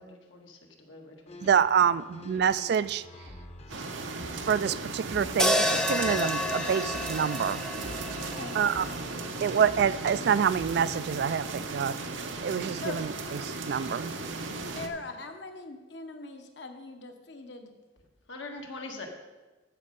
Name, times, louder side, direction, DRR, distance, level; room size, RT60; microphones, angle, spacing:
voice 1, 0.0-1.4 8.8-8.9 18.3-19.1, left 3 dB, 85° left, 1 dB, 1.6 m, -43 dB
sound 1, 1.3-11.4, left 1 dB, 35° left, 0.8 m, -47 dB
voice 2, 1.4-3.0 4.5-7.6 8.5-8.8 9.4-12.0 12.4-14.1, right 7 dB, 60° right, 16 dB, 0.3 m, -27 dB
sound 2, 3.7-14.9, right 3 dB, 85° right, 0.9 m, -36 dB
sound 3, 5.4-9.7, left 1 dB, 5° left, 0.6 m, -30 dB
voice 3, 8.3-9.0 12.7-13.0 14.7-17.7, left 3 dB, 65° left, 6 dB, 1.0 m, -41 dB
13.5 x 5.4 x 5.2 m, 1.2 s
head